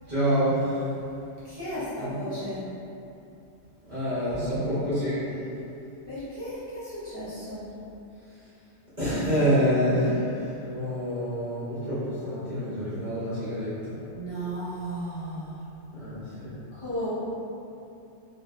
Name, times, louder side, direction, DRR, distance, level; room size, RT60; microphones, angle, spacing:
voice 1, 0.1-0.9 2.0-2.3 3.9-5.3 8.3-8.5 9.0-14.0 15.9-16.6, equal, 45° right, -13 dB, 0.8 m, -27 dB
voice 2, 1.4-2.7 6.1-7.6 14.1-15.6 16.7-17.1, equal, 55° left, -12 dB, 1.0 m, -34 dB
2.6 x 2.4 x 2.3 m, 2.8 s
omnidirectional pair, 1.3 m